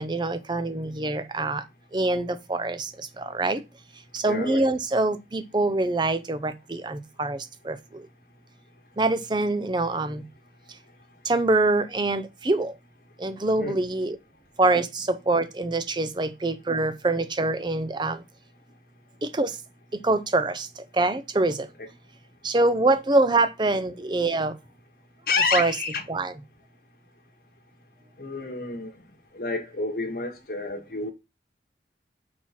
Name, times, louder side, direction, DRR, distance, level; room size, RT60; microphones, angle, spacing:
voice 1, 0.0-1.6 1.9-3.6 4.1-8.1 9.0-10.2 11.2-12.7 13.2-14.2 14.6-18.2 19.2-19.6 20.0-21.7 22.4-24.5 25.5-25.7 26.1-26.3, right 2 dB, 25° right, 0.5 m, -25 dB
voice 2, 4.3-4.7 13.6-13.8 21.8-21.9 25.3-26.0 28.2-28.9 29.3-31.1, left 4 dB, 55° left, 1.2 m, -29 dB
4.7 x 4.2 x 5.7 m
head